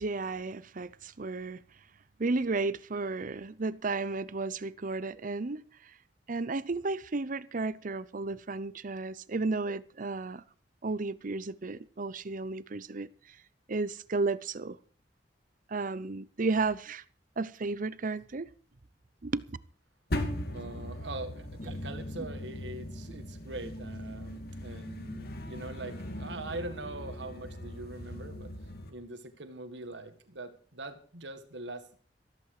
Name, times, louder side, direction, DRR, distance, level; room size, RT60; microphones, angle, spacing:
voice 1, 0.0-1.6 2.2-5.6 6.3-10.4 10.8-13.4 13.7-14.8 15.7-17.0 17.4-18.5 19.2-19.4, right 3 dB, 45° right, 0.7 m, -33 dB
sound 1, 20.1-28.9, left 1 dB, 60° left, 2.4 m, -39 dB
voice 2, 20.5-28.5 28.9-32.0, right 2 dB, 75° right, 1.9 m, -42 dB
14.0 x 14.0 x 4.9 m
head